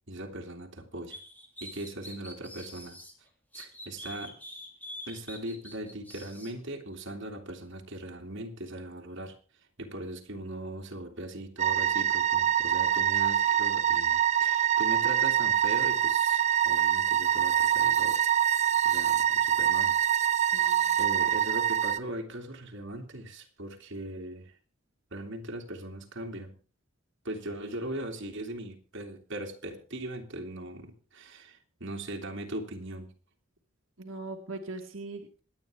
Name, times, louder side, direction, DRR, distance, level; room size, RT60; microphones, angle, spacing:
voice 1, 0.1-1.2 1.6-3.0 3.5-4.4 5.1-9.4 9.8-18.2 18.8-20.0 20.4-24.5 25.1-26.6 27.2-33.1, right 1 dB, 65° right, 1 dB, 2.7 m, -39 dB
sound 1, 1.1-3.1 3.5-6.5, left 1 dB, 10° left, 2.9 m, -45 dB
sound 2, 11.6-22.0, right 10 dB, 35° right, 0.7 m, -25 dB
voice 2, 20.5-21.0 34.0-35.4, right 2 dB, 90° right, 2 dB, 1.8 m, -41 dB
26.5 x 9.5 x 3.5 m, 0.38 s
head